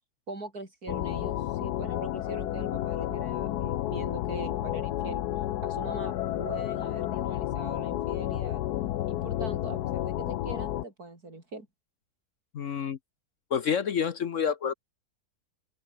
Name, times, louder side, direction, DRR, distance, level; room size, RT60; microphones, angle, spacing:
voice 1, 0.3-5.2 5.6-8.6 9.1-11.7, right 2 dB, 65° right, 6.1 m, -42 dB
sound 1, 0.9-10.8, left 13 dB, 75° left, 1.2 m, -31 dB
voice 2, 12.5-13.0 13.5-14.7, left 7 dB, 55° left, 1.1 m, -28 dB
open air
omnidirectional pair, 1.7 m